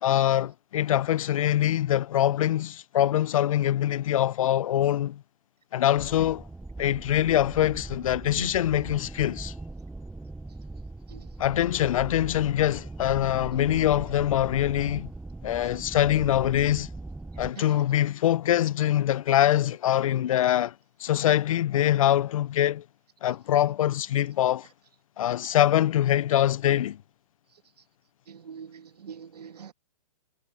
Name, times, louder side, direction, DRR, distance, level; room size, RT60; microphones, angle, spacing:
voice 1, 0.0-5.2 5.7-6.4 6.8-9.5 11.4-15.1 15.4-16.9 17.4-20.7 21.0-22.8 23.2-24.7 25.2-27.0, left 12 dB, 60° left, 0.5 m, -24 dB
sound 1, 6.0-17.5, right 2 dB, 5° right, 0.7 m, -40 dB
voice 2, 28.3-29.7, right 7 dB, 85° right, 1.5 m, -42 dB
hypercardioid pair, 155°, 20 cm